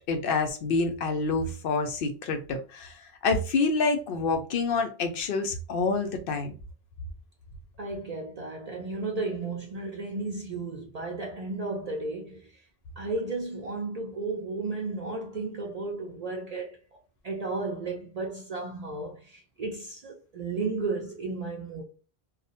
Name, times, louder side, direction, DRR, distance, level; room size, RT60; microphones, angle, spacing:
voice 1, 0.1-6.5, left 4 dB, 65° left, 0.7 m, -27 dB
voice 2, 7.8-12.6 13.0-16.8 17.2-21.8, right 3 dB, 55° right, 0.5 m, -34 dB
2.4 x 2.0 x 2.7 m
omnidirectional pair, 1.0 m